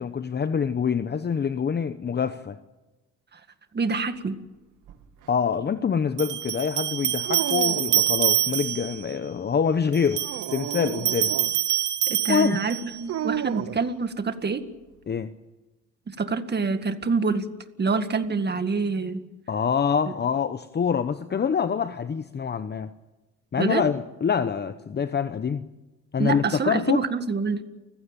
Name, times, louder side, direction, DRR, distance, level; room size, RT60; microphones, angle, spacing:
voice 1, 0.0-2.6 5.3-10.2 10.5-11.3 12.3-12.6 15.1-15.3 19.5-22.9 23.5-25.6 26.1-27.0, left 6 dB, 35° left, 0.9 m, -25 dB
voice 2, 3.7-4.3 12.1-14.6 16.1-17.4 17.8-19.2 23.6-23.8 26.2-27.6, right 4 dB, 35° right, 2.0 m, -26 dB
sound 1, 4.9-5.0 6.2-9.0 9.9-13.0, right 14 dB, 80° right, 2.1 m, -26 dB
Dog, 7.2-8.2 10.1-11.6 13.1-13.9, right 11 dB, 55° right, 0.7 m, -32 dB
29.0 x 16.0 x 9.0 m
cardioid pair, 90°, 30 cm